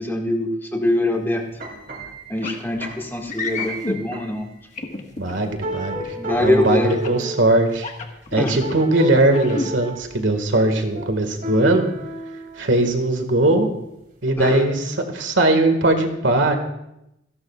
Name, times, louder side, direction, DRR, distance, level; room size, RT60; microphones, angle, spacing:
voice 1, 0.0-1.4 2.3-4.5 6.2-7.2 8.4-8.6 14.4-14.7, left 1 dB, 10° left, 0 dB, 1.9 m, -23 dB
sound 1, 1.4-4.5 5.1-5.2 5.6-7.5 8.4-10.1 10.5-12.9 13.3-13.7 14.3-14.4, right 1 dB, 50° right, 2.7 m, -33 dB
sound 2, 2.4-2.6 3.3-4.0 4.8-5.4 6.9-7.2 7.7-8.8 9.3-9.7, left 3 dB, 40° left, 1.5 m, -29 dB
voice 2, 5.2-6.1 6.4-7.9 8.3-11.9 12.6-13.7 14.2-14.8 15.1-16.5, right 2 dB, 80° right, 6 dB, 1.9 m, -19 dB
28.5 x 11.5 x 2.4 m, 0.86 s
head